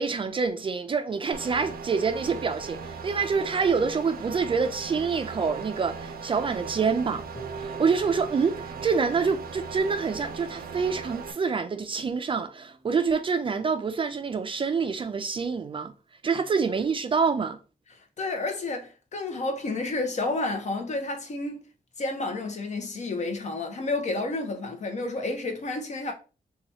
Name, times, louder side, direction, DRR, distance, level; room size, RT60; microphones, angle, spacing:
voice 1, 0.0-7.2 7.6-15.9 16.2-17.6, right 5 dB, 35° right, 0.3 m, -26 dB
sound 1, 1.3-11.3, right 5 dB, 90° right, 0.5 m, -38 dB
Harp, 7.3-13.4, right 3 dB, 25° left, 0.7 m, -46 dB
voice 2, 17.9-21.6 22.0-26.1, left 2 dB, 50° left, 0.8 m, -30 dB
2.9 x 2.3 x 4.0 m
wide cardioid pair, 135°, 15 cm